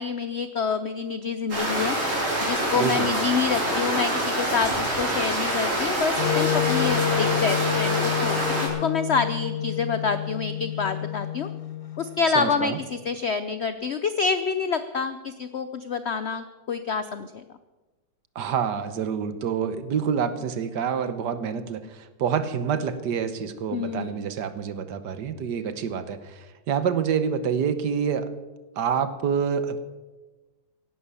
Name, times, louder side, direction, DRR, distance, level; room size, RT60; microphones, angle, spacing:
voice 1, 0.0-2.0 2.4-11.5 12.0-17.4 23.7-24.2, left 5 dB, 75° left, 11 dB, 0.6 m, -27 dB
sound 1, 1.5-8.7, right 1 dB, 45° right, 4.7 m, -26 dB
voice 2, 2.7-3.1 12.3-12.8 18.3-28.3 28.8-29.8, right 7 dB, 70° right, 12 dB, 1.6 m, -27 dB
Wind instrument woodwind instrument, 6.2-12.2, left 10 dB, 40° left, 1.0 m, -28 dB
16.5 x 11.5 x 7.0 m, 1.2 s
omnidirectional pair, 2.0 m